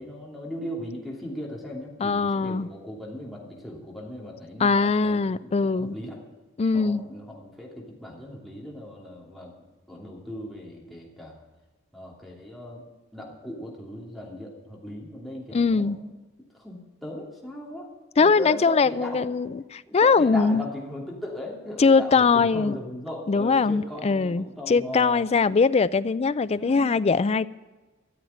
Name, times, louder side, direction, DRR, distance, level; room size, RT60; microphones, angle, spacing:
voice 1, 0.0-6.2 6.7-9.5 9.9-11.4 11.9-12.8 13.1-16.1 16.5-17.9 18.2-19.3 19.9-25.3 26.5-27.1, left 1 dB, ahead, -4 dB, 2.9 m, -38 dB
voice 2, 2.0-2.7 4.6-5.9 6.6-7.0 15.5-16.0 18.2-20.6 21.8-22.7 23.3-27.5, left 4 dB, 30° left, 15 dB, 0.4 m, -21 dB
14.0 x 7.3 x 9.9 m, 1.2 s
head